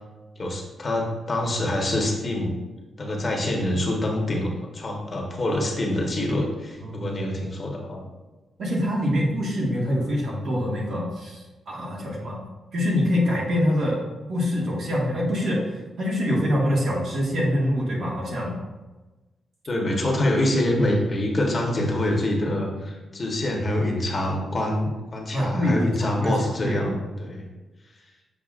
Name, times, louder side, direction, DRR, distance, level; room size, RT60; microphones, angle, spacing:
voice 1, 0.4-2.5 3.0-8.0 19.7-27.4, left 1 dB, 30° left, 0 dB, 1.1 m, -25 dB
voice 2, 6.8-7.1 8.6-12.4 12.7-18.6 25.3-26.8, left 1 dB, 65° right, -4 dB, 1.8 m, -25 dB
7.3 x 5.7 x 2.5 m, 1.2 s
wide cardioid pair, 135°, 0 cm